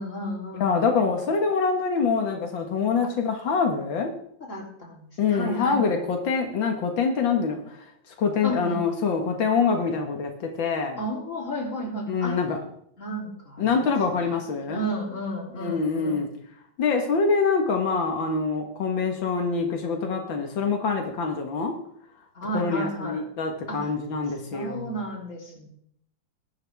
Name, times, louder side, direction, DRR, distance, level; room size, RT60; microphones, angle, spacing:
voice 1, 0.0-0.9 4.5-6.0 8.4-8.8 11.0-12.4 13.0-14.4 14.7-16.3 22.4-23.2 23.7-23.9 24.5-25.7, equal, 40° left, -1 dB, 3.8 m, -33 dB
voice 2, 0.6-4.1 5.2-7.6 8.2-11.0 12.1-12.6 13.6-14.8 15.6-16.3 16.8-21.7 22.5-24.9, left 5 dB, 85° left, 3 dB, 2.3 m, -25 dB
21.0 x 11.0 x 3.5 m, 0.68 s
omnidirectional pair, 2.1 m